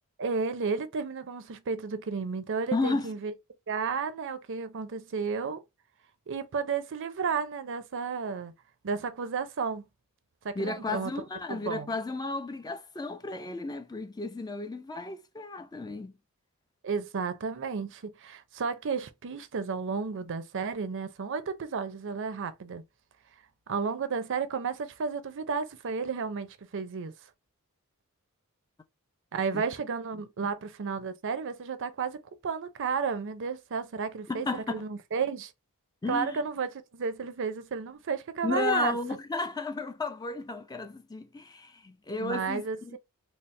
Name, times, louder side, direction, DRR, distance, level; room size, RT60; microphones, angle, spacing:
voice 1, 0.2-3.3 3.7-5.6 6.3-8.5 8.8-9.8 10.4-11.1 11.5-11.9 16.8-22.8 23.7-27.1 29.3-32.2 32.4-35.5 36.1-39.0 42.2-43.0, right 5 dB, 55° right, 0.5 m, -32 dB
voice 2, 2.7-3.1 10.6-16.1 29.5-29.6 34.3-34.8 36.0-36.4 38.4-43.0, left 3 dB, 15° left, 0.4 m, -33 dB
4.1 x 2.0 x 3.1 m
head